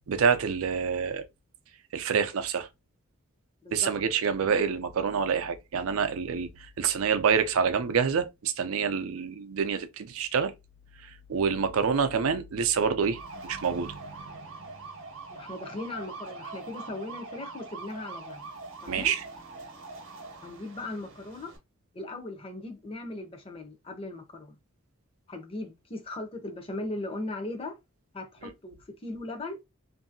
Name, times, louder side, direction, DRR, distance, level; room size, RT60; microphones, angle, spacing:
voice 1, 0.1-1.2 1.9-2.7 3.7-6.5 6.8-10.5 11.3-13.9 18.9-19.2, right 6 dB, 80° right, 0.5 m, -27 dB
sound 1, 13.1-21.6, right 3 dB, 60° right, 0.8 m, -43 dB
voice 2, 15.3-18.5 18.8-19.1 20.4-21.5 21.9-24.6 25.3-27.8 28.1-29.6, left 2 dB, 25° left, 0.5 m, -38 dB
2.7 x 2.6 x 2.6 m
head